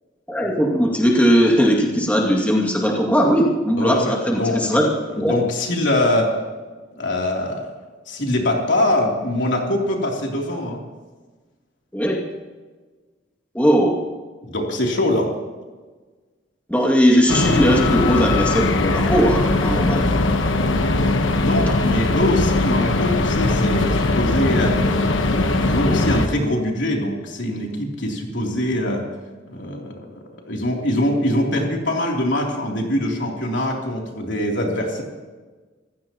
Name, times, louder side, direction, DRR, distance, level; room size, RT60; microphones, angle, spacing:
voice 1, 0.3-4.9 5.2-5.4 11.9-12.2 13.5-14.0 16.7-20.0 21.7-21.8, equal, 10° left, -2 dB, 2.4 m, -18 dB
voice 2, 3.8-6.3 6.9-7.7 8.1-10.8 14.4-15.3 21.4-25.0 25.3-29.1 29.5-35.0, left 1 dB, 70° left, -1 dB, 3.3 m, -23 dB
Faulty truck arives at furnace depo, 17.3-26.3, left 2 dB, 85° left, 1.3 m, -20 dB
26.0 x 16.0 x 3.1 m, 1.3 s
head